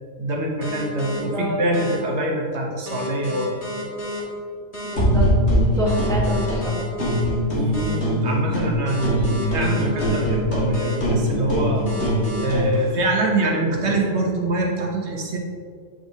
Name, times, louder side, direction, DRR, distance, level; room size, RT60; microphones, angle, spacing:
voice 1, 0.2-3.6 7.5-11.9 12.4-15.4, right 2 dB, 70° right, -1 dB, 1.2 m, -24 dB
sound 1, 0.6-1.2 1.7-2.0 2.9-4.2 4.7-4.9 5.9-7.2 7.7-8.0 8.9-10.2 10.7-11.0 11.9-12.4, left 1 dB, 30° left, 1.3 m, -32 dB
voice 2, 1.0-1.6 4.8-6.8, left 1 dB, 5° left, -4 dB, 0.9 m, -28 dB
sound 2, 4.9-6.6 7.0-8.7 9.0-12.7, equal, 75° left, 1.7 m, -22 dB
7.7 x 5.0 x 2.7 m, 2.1 s
omnidirectional pair, 1.2 m